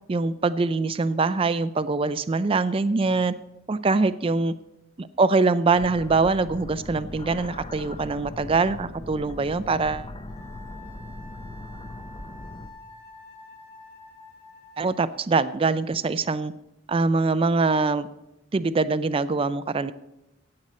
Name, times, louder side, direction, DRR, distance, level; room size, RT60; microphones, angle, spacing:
voice 1, 0.1-3.3 3.7-4.5 5.0-10.1 14.8-16.5 16.9-18.1 18.5-19.9, right 3 dB, 25° right, 14 dB, 0.4 m, -23 dB
sound 1, 5.7-12.7, left 1 dB, 25° left, 0.7 m, -39 dB
Wind instrument woodwind instrument, 10.3-15.1, left 2 dB, 80° left, 5.3 m, -47 dB
16.5 x 7.7 x 4.2 m, 0.91 s
head